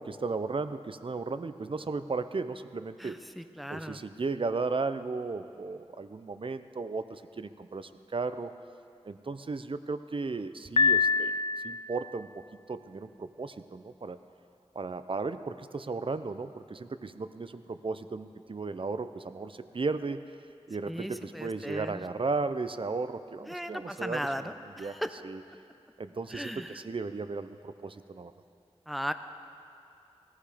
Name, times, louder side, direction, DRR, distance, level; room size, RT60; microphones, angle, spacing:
voice 1, 0.0-3.2 3.7-8.5 9.0-11.4 11.6-14.2 14.7-20.2 20.7-24.5 24.8-24.9 25.2-25.4 26.0-28.3, right 3 dB, 50° right, 11 dB, 0.6 m, -35 dB
voice 2, 3.0-4.0 20.9-22.1 23.5-25.1 26.3-26.8 28.9-29.1, equal, ahead, 9 dB, 0.7 m, -37 dB
Piano, 10.8-12.1, left 5 dB, 55° left, 0.4 m, -25 dB
18.5 x 14.5 x 5.0 m, 2.6 s
wide cardioid pair, 65°, 11 cm